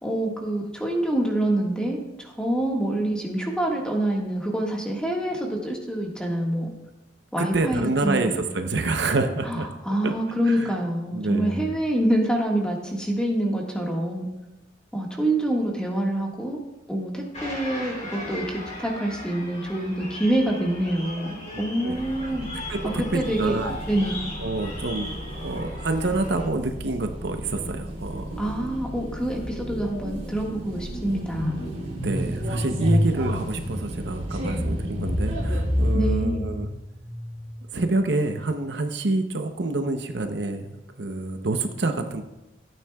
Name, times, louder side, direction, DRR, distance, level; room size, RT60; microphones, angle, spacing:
voice 1, 0.0-6.7 7.3-8.4 9.4-14.3 14.9-16.6 16.9-21.3 21.6-22.5 23.0-23.6 23.9-24.2 28.4-31.6 35.9-36.4, right 1 dB, 5° left, -1 dB, 1.6 m, -26 dB
voice 2, 7.4-9.7 10.0-10.1 10.5-10.7 11.1-11.7 21.5-21.9 22.7-23.8 24.4-25.1 25.4-28.3 32.0-36.7 37.7-42.2, right 2 dB, 65° right, 6 dB, 0.8 m, -27 dB
sound 1, 17.3-26.5, left 1 dB, 40° left, 2.9 m, -38 dB
sound 2, 21.9-36.0, equal, 50° right, 2.6 m, -35 dB
sound 3, 28.3-28.6 28.9-37.7, left 1 dB, 60° left, 2.8 m, -29 dB
15.0 x 9.1 x 2.3 m, 0.95 s
head